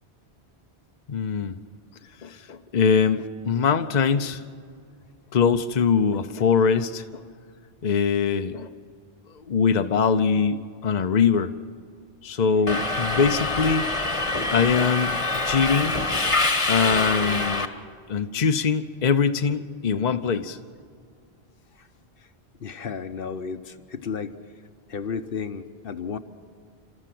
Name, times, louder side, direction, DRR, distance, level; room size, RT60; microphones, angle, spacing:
voice 1, 1.1-1.6 2.2-4.4 5.3-7.2 7.8-8.7 9.3-11.5 12.2-13.9 14.4-15.1 15.4-15.9 16.7-17.7 18.1-20.6, left 6 dB, 50° left, 8 dB, 0.8 m, -22 dB
Subway metro underground, 12.7-17.7, left 2 dB, 30° left, 1.3 m, -25 dB
voice 2, 22.6-24.3 24.9-26.2, left 6 dB, 65° left, 10 dB, 1.1 m, -33 dB
29.5 x 13.5 x 7.7 m, 2.2 s
omnidirectional pair, 1.1 m